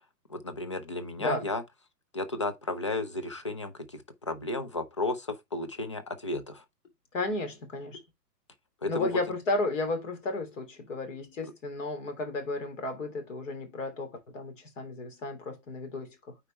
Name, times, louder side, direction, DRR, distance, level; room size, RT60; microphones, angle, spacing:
voice 1, 0.3-1.6 2.1-6.6 8.8-9.1, left 2 dB, 20° left, 0.4 m, -33 dB
voice 2, 1.2-1.5 7.1-8.0 8.9-16.2, left 2 dB, 50° left, 3.1 m, -33 dB
9.2 x 4.6 x 3.2 m
figure-of-eight pair, 120°, 49 cm